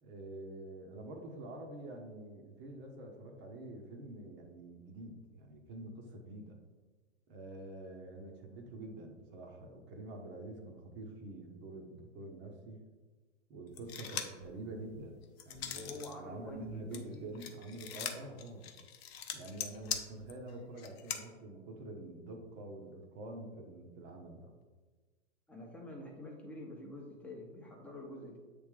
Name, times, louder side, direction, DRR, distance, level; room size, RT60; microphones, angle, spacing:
voice 1, 0.0-6.6 7.3-12.8 13.5-18.7 19.3-24.5, right 2 dB, 30° right, 2 dB, 1.0 m, -47 dB
sound 1, 13.8-14.5 14.9-16.1 16.5-21.2, left 9 dB, 55° left, 0.8 m, -41 dB
voice 2, 15.7-17.4 25.5-28.4, left 1 dB, 5° left, -1 dB, 0.9 m, -47 dB
7.9 x 3.4 x 3.6 m, 1.3 s
hypercardioid pair, 115°, 37 cm